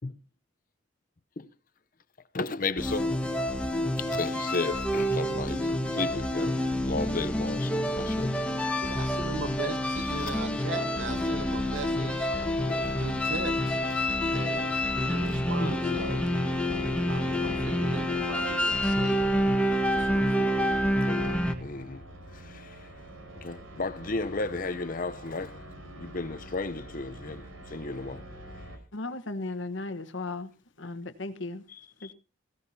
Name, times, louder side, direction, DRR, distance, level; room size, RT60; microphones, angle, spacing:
voice 1, 2.3-3.2 4.0-8.3 9.9-10.4 11.1-13.1 15.6-16.0 21.1-21.2 21.6-22.0 22.3-22.9 23.4-25.6 26.0-28.2 31.7-32.1, left 3 dB, 40° left, 0.7 m, -35 dB
sound 1, 2.8-21.5, left 1 dB, 5° left, 1.5 m, -28 dB
voice 2, 8.8-12.3 13.0-13.8 14.3-16.2 17.1-19.2 19.9-20.7, right 3 dB, 65° right, 1.2 m, -39 dB
sound 2, 11.0-28.8, right 1 dB, 85° right, 4.8 m, -46 dB
voice 3, 28.9-30.5 30.8-31.6 32.0-32.1, left 2 dB, 65° left, 1.2 m, -36 dB
17.5 x 16.0 x 2.8 m
head